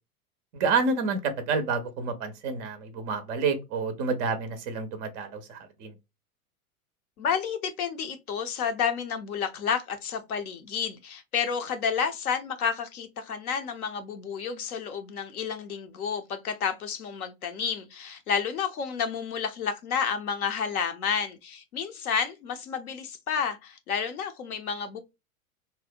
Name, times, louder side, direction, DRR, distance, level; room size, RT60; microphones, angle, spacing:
voice 1, 0.5-5.9, right 4 dB, 20° right, 0.3 m, -29 dB
voice 2, 7.2-25.0, left 7 dB, 75° left, 0.7 m, -30 dB
2.7 x 2.0 x 2.4 m
figure-of-eight pair, 90°, 44 cm